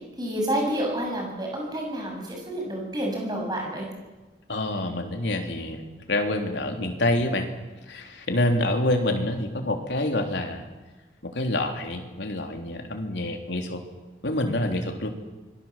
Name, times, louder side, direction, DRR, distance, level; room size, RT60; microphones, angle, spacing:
voice 1, 0.2-3.9, right 1 dB, 25° right, 0 dB, 7.5 m, -29 dB
voice 2, 4.5-5.8 6.1-7.5 7.9-10.7 11.2-13.8 14.2-15.1, left 1 dB, 85° left, 4 dB, 3.5 m, -27 dB
26.5 x 22.0 x 7.5 m, 1.2 s
head